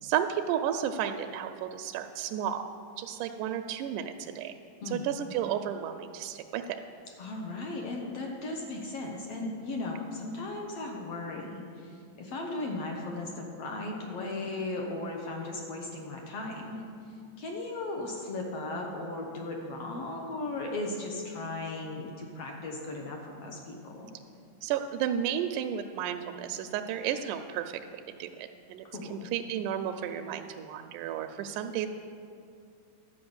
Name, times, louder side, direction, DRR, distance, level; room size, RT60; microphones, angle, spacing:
voice 1, 0.0-2.6 3.0-4.6 4.9-6.8 24.6-28.9 29.1-31.9, right 9 dB, 80° right, 6 dB, 1.9 m, -32 dB
voice 2, 7.2-16.8 17.4-24.1 28.8-29.3, left 2 dB, 65° left, 1 dB, 1.6 m, -36 dB
12.0 x 5.7 x 7.9 m, 2.4 s
omnidirectional pair, 3.9 m